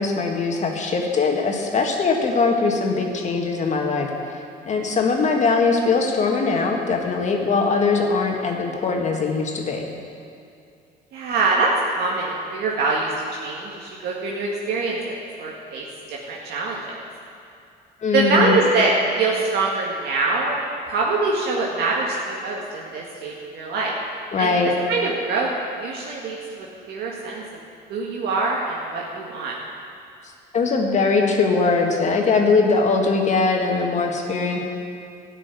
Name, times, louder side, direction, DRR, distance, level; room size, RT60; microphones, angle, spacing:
voice 1, 0.0-4.1 4.6-9.9 18.0-18.5 24.3-24.7 30.5-34.6, left 4 dB, 45° left, 2 dB, 1.8 m, -21 dB
voice 2, 11.1-13.1 13.4-17.0 18.1-20.6 20.8-24.0 24.4-24.6 24.9-25.5 25.8-27.4 27.9-29.5, right 3 dB, 75° right, -3 dB, 1.8 m, -24 dB
12.5 x 6.2 x 9.7 m, 2.5 s
cardioid pair, 110°, 17 cm